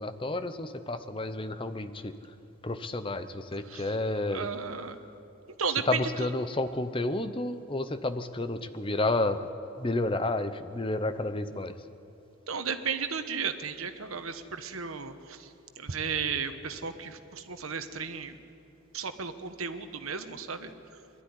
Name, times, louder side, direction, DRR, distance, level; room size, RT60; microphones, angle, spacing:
voice 1, 0.0-2.3 2.6-4.5 5.9-9.5 9.8-11.7, left 2 dB, 25° left, 10 dB, 0.7 m, -31 dB
voice 2, 3.6-4.0 4.3-5.0 5.6-6.3 12.5-18.4 18.9-21.0, right 6 dB, 85° right, 9 dB, 1.2 m, -34 dB
22.0 x 12.5 x 9.9 m, 2.8 s
head